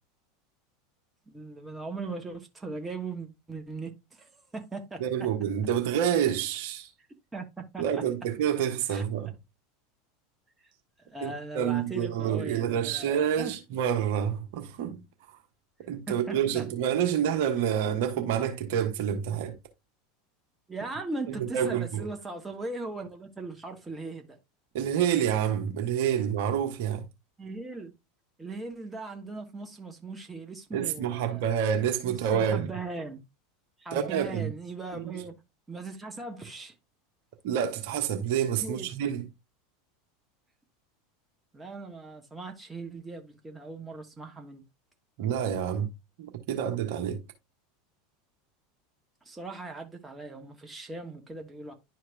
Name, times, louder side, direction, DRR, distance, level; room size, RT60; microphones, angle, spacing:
voice 1, 1.3-5.3 7.3-8.0 8.9-9.0 11.1-13.5 16.1-16.7 20.7-24.4 27.4-27.9 28.4-31.5 32.1-33.2 33.8-35.3 35.7-36.7 38.6-38.9 41.5-44.6 49.2-51.7, right 3 dB, 15° right, 1.4 m, -39 dB
voice 2, 5.0-6.9 7.8-9.3 11.2-15.0 15.9-19.5 21.3-22.1 24.7-27.1 30.7-32.7 33.9-34.5 34.9-35.1 37.4-39.2 45.2-45.9 46.2-47.2, right 9 dB, 55° right, 1.4 m, -28 dB
11.0 x 4.6 x 2.3 m
figure-of-eight pair, 80°, 0 cm